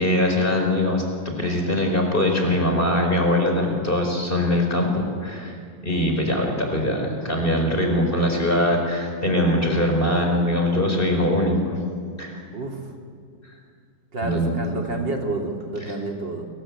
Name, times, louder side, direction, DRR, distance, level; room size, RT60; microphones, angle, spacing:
voice 1, 0.0-5.5 5.8-11.8 12.2-12.4 14.2-14.7, left 1 dB, 25° left, 3 dB, 4.9 m, -22 dB
voice 2, 14.1-16.5, right 2 dB, 70° right, 2 dB, 3.7 m, -29 dB
30.0 x 22.0 x 8.8 m, 2.2 s
omnidirectional pair, 2.1 m